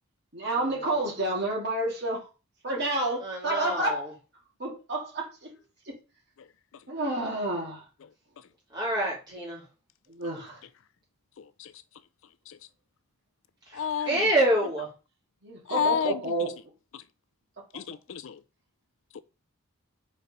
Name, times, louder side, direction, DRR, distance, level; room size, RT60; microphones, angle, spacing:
voice 1, 0.3-2.3 2.6-4.1 4.6-5.5 5.8-5.9 6.9-7.9 10.1-10.6 15.4-16.5, right 2 dB, 50° right, 2.4 m, -30 dB
voice 2, 3.2-4.0 8.7-9.6 13.7-13.8 14.0-14.9, right 1 dB, 20° right, 3.5 m, -26 dB
voice 3, 11.4-11.7 12.5-12.6 13.7-14.2 15.7-16.2 16.9-17.0 17.7-18.4 19.1-19.2, left 7 dB, 60° left, 0.4 m, -30 dB
5.1 x 4.3 x 5.4 m
head